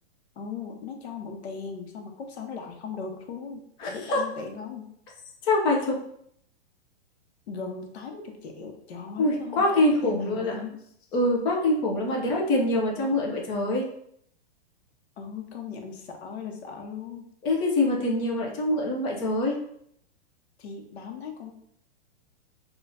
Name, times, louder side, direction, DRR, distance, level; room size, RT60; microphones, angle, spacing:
voice 1, 0.4-4.9 7.5-10.8 12.1-12.2 13.0-13.1 15.2-17.3 20.6-21.5, left 5 dB, 75° left, 3 dB, 1.0 m, -38 dB
voice 2, 3.8-4.2 5.4-6.0 9.2-10.5 11.1-13.8 17.4-19.5, left 2 dB, 15° left, -1 dB, 0.4 m, -24 dB
5.8 x 2.4 x 2.6 m, 0.70 s
hypercardioid pair, 160°, 33 cm